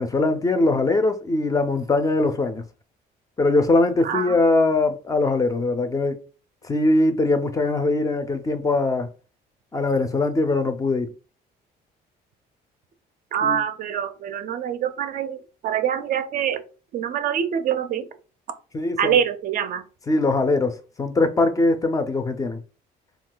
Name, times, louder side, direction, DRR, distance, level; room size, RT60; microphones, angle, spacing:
voice 1, 0.0-2.6 3.4-6.2 6.6-9.1 9.7-11.1 13.4-13.6 18.7-19.1 20.1-22.6, left 2 dB, 20° left, 0.4 m, -21 dB
voice 2, 4.0-4.4 13.3-16.6 16.9-18.1 19.0-19.9, right 9 dB, 55° right, 0.4 m, -25 dB
2.3 x 2.2 x 3.7 m
cardioid pair, 110°, 17 cm